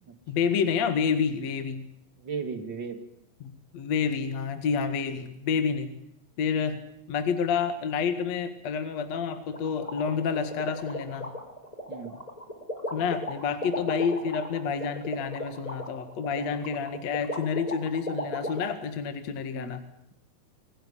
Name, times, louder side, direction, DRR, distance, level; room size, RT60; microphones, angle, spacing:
voice 1, 0.3-1.9 3.4-5.9 6.4-6.8 7.1-11.3 12.9-19.8, left 6 dB, 55° left, 9 dB, 2.7 m, -29 dB
voice 2, 2.2-3.0 11.9-12.2 19.5-19.8, right 5 dB, 35° right, 8 dB, 2.9 m, -36 dB
sound 1, 9.5-18.6, left 1 dB, 10° left, 5.4 m, -35 dB
26.0 x 17.5 x 10.0 m, 0.78 s
omnidirectional pair, 4.0 m